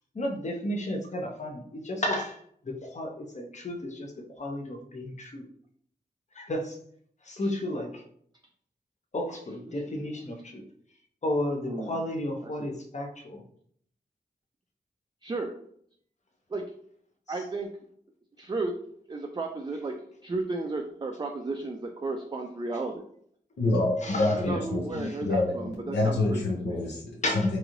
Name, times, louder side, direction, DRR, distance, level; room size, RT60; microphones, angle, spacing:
voice 1, 0.1-4.1 4.4-5.5 6.3-6.8 7.2-8.0 9.1-10.6 11.2-13.4 24.0-24.6 25.0-25.2 27.2-27.5, left 1 dB, 40° left, 2 dB, 0.6 m, -33 dB
voice 2, 11.6-12.0 12.4-12.5 15.2-15.5 16.5-16.6 17.3-17.7 18.4-18.7 19.1-20.0 20.2-23.0 24.3-26.8, right 3 dB, 25° right, 3 dB, 0.3 m, -33 dB
voice 3, 23.6-24.9 25.2-25.6 25.9-27.6, left 2 dB, 85° left, -3 dB, 0.6 m, -26 dB
3.0 x 2.7 x 2.5 m, 0.64 s
cardioid pair, 45°, 18 cm